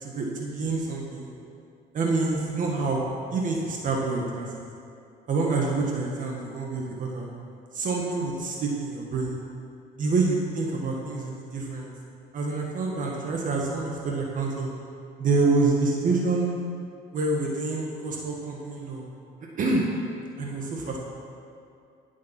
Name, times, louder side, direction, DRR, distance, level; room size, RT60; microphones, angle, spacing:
voice 1, 0.0-1.3 1.9-3.1 3.3-4.7 5.3-7.3 7.7-9.4 10.0-11.9 12.3-14.7 15.2-16.5 17.1-19.0 19.6-19.8 20.4-21.0, right 3 dB, 50° right, -1 dB, 1.8 m, -27 dB
16.5 x 7.4 x 6.0 m, 2.5 s
cardioid pair, 110°, 17 cm